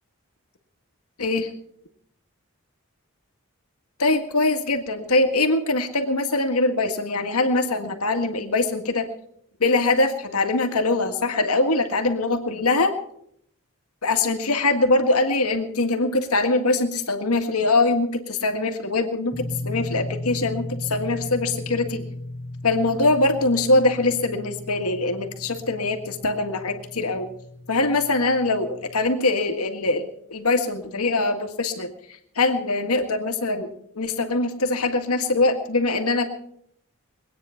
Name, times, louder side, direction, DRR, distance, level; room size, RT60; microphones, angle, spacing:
voice 1, 4.0-9.1 9.6-12.9 14.0-22.0 22.6-27.3 27.7-31.9 32.4-36.3, left 2 dB, 90° left, 6 dB, 1.9 m, -22 dB
sound 1, 19.3-29.1, left 1 dB, 15° right, 1.3 m, -36 dB
22.5 x 9.4 x 5.8 m, 0.69 s
head